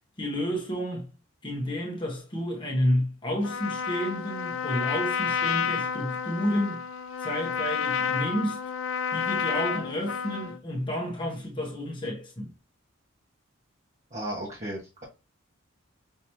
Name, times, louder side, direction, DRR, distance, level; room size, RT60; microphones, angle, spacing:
voice 1, 0.2-1.1 1.4-6.8 7.2-8.6 9.1-12.5, equal, 25° left, 1.1 m, -30 dB
Trumpet, 3.4-10.6, left 7 dB, 70° left, 0.4 m, -30 dB
voice 2, 14.1-15.0, right 1 dB, 35° right, 1.3 m, -35 dB
5.5 x 2.9 x 3.0 m
head